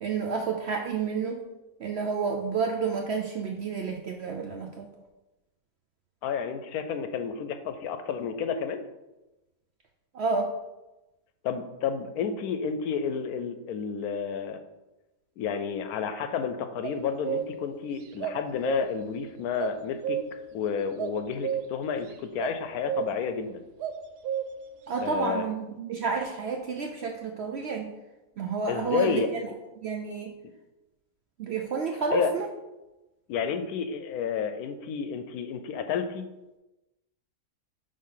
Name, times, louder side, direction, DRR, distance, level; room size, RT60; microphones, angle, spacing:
voice 1, 0.0-1.4 1.8-4.9 10.1-10.5 24.9-27.9 28.4-29.5 29.8-30.3 31.4-32.5, right 5 dB, 65° right, 2 dB, 0.6 m, -30 dB
voice 2, 6.2-8.8 11.4-14.6 15.4-20.2 20.5-23.7 25.0-25.5 28.7-29.3 32.1-32.3 33.3-36.3, left 7 dB, 75° left, 8 dB, 1.0 m, -31 dB
sound 1, 16.8-17.7 18.2-19.1 19.6-20.5 21.0-22.0 22.4-22.6 22.9-23.4 23.8-24.7, right 8 dB, 90° right, 1.1 m, -32 dB
5.4 x 3.6 x 5.6 m, 1.0 s
omnidirectional pair, 1.6 m